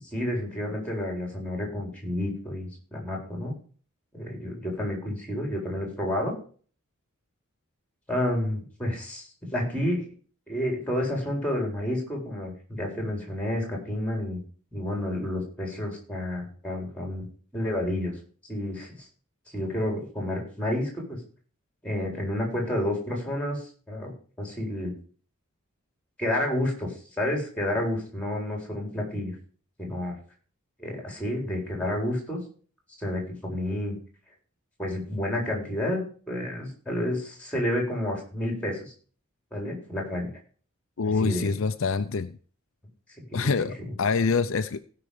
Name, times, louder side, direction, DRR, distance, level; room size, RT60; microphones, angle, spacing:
voice 1, 0.1-3.5 4.1-6.3 8.1-10.1 10.5-14.4 14.7-17.3 17.5-18.2 18.5-18.9 19.5-21.2 21.8-24.1 24.4-24.9 26.2-29.3 29.8-30.2 30.8-32.4 33.0-33.9 34.8-36.0 36.3-38.9 39.5-40.3 41.0-41.5 43.3-43.7, left 1 dB, 5° left, 1 dB, 4.2 m, -30 dB
voice 2, 41.0-42.4 43.3-44.8, left 4 dB, 65° left, 10 dB, 0.6 m, -26 dB
16.5 x 5.8 x 5.0 m, 0.42 s
head